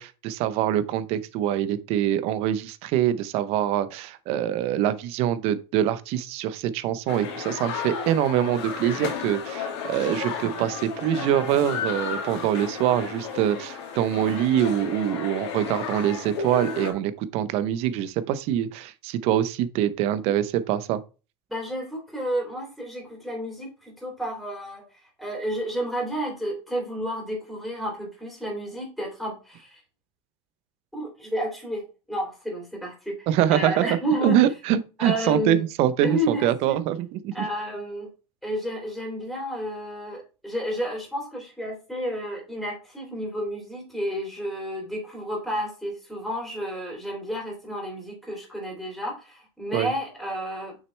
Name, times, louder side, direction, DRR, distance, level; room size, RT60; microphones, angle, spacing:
voice 1, 0.0-21.0 33.3-33.8 34.2-37.3 49.7-49.9, right 11 dB, 45° right, 0.7 m, -24 dB
sound 1, 7.1-16.9, left 7 dB, 75° left, 2.3 m, -33 dB
voice 2, 21.5-29.8 30.9-34.4 35.0-35.6 36.0-36.8 37.3-38.1 38.4-50.8, equal, ahead, 3.2 m, -31 dB
6.6 x 6.1 x 3.3 m
supercardioid pair, 155°, 14 cm